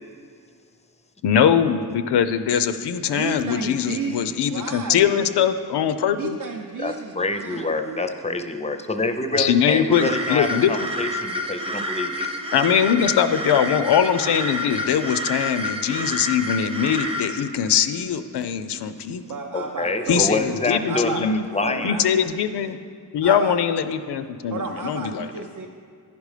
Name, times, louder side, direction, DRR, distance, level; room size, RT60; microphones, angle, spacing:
voice 1, 1.2-6.4 9.4-10.7 12.5-19.2 20.1-21.5 21.8-22.8 23.1-25.3, left 8 dB, 90° left, 11 dB, 0.5 m, -22 dB
voice 2, 3.1-5.5 6.2-8.0 19.2-20.4 20.9-21.3 21.6-22.3 23.2-23.6 24.5-25.7, right 4 dB, 55° right, 1 dB, 0.6 m, -33 dB
voice 3, 6.8-12.6 12.9-13.1 19.5-22.0, left 2 dB, 20° left, 8 dB, 0.4 m, -26 dB
sound 1, 9.9-17.3, equal, 15° right, 0.7 m, -29 dB
10.5 x 5.2 x 4.9 m, 2.2 s
wide cardioid pair, 110°, 39 cm